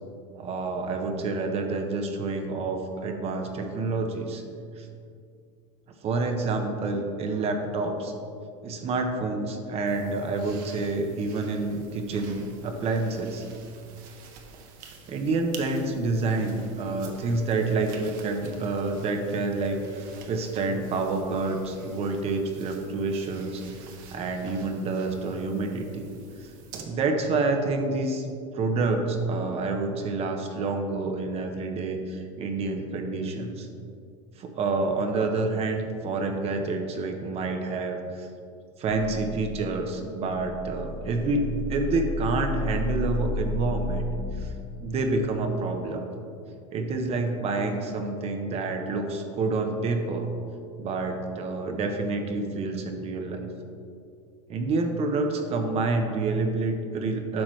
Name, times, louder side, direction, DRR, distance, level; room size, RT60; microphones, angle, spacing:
voice 1, 0.3-4.4 4.8-4.9 6.0-8.1 8.6-13.4 14.8-26.1 26.4-26.5 26.8-28.3 28.5-33.7 34.4-38.3 38.8-44.0 44.4-44.5 44.8-46.1 46.7-50.3 50.8-53.5 54.5-57.4, right 3 dB, 35° right, 4 dB, 0.9 m, -28 dB
sound 1, 9.9-26.8, right 5 dB, 55° right, 1.1 m, -48 dB
sound 2, 38.9-44.5, left 1 dB, 25° left, 0.8 m, -33 dB
10.5 x 5.9 x 3.2 m, 2.4 s
supercardioid pair, 120°, 17 cm